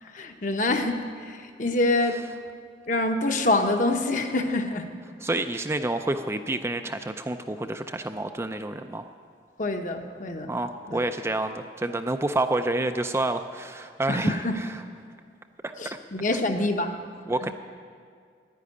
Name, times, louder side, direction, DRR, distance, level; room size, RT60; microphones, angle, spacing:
voice 1, 0.0-2.2 2.9-4.8 9.6-10.5 10.9-11.0 14.1-14.6 15.8-16.9 17.4-17.5, left 2 dB, 45° left, 5 dB, 1.0 m, -26 dB
voice 2, 5.2-9.1 10.5-14.8 15.6-15.7 17.3-17.5, right 2 dB, 15° right, 7 dB, 0.4 m, -28 dB
10.5 x 10.0 x 9.7 m, 2.2 s
head